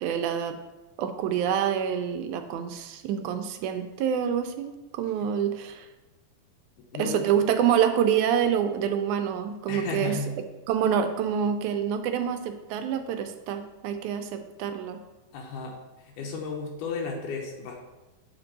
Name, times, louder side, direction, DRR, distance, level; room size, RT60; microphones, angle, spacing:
voice 1, 0.0-0.6 1.0-5.9 6.9-10.2 10.7-15.0, right 8 dB, 80° right, 7 dB, 1.9 m, -27 dB
voice 2, 6.9-7.2 9.7-10.3 15.3-17.8, left 4 dB, 85° left, 0 dB, 2.3 m, -34 dB
7.5 x 4.4 x 3.9 m, 1.2 s
omnidirectional pair, 3.6 m